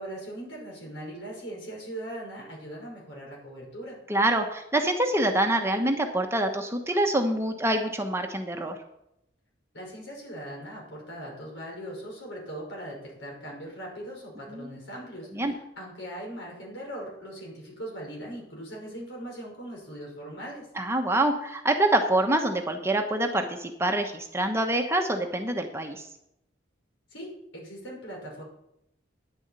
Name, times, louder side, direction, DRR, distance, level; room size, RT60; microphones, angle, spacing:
voice 1, 0.0-4.0 9.7-20.7 27.1-28.4, right 1 dB, 80° left, -2 dB, 5.6 m, -40 dB
voice 2, 4.1-8.8 14.5-14.7 15.3-15.5 20.7-26.1, right 1 dB, 15° right, 4 dB, 1.0 m, -26 dB
9.9 x 7.1 x 8.3 m, 0.81 s
head